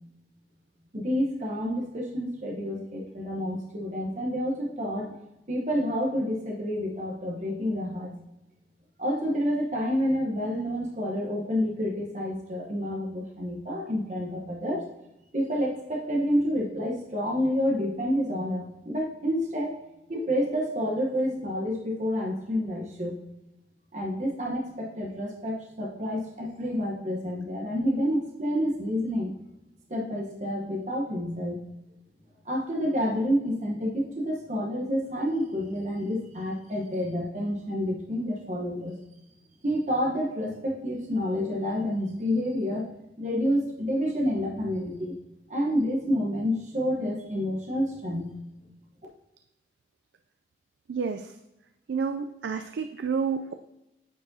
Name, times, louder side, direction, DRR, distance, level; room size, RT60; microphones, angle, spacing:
voice 1, 0.9-5.1 5.5-8.1 9.0-14.8 15.3-19.7 20.1-23.1 23.9-29.3 29.9-31.6 32.4-39.0 39.6-42.9 43.2-45.1 45.5-48.3, equal, 40° right, -1 dB, 1.0 m, -29 dB
voice 2, 50.9-51.3 51.9-53.5, right 5 dB, 80° right, 8 dB, 0.4 m, -29 dB
9.0 x 4.8 x 2.7 m, 0.92 s
head